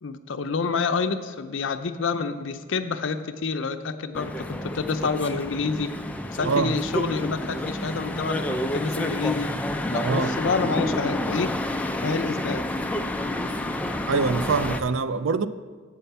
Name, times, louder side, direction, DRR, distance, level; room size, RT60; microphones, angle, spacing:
voice 1, 0.0-5.9 6.3-9.5 9.9-11.5 12.0-12.6, left 4 dB, 75° left, 9 dB, 0.5 m, -28 dB
sound 1, 4.1-14.8, left 1 dB, 5° left, 0.3 m, -29 dB
voice 2, 14.1-15.5, right 4 dB, 85° right, 13 dB, 0.4 m, -24 dB
8.1 x 5.6 x 6.8 m, 1.5 s
head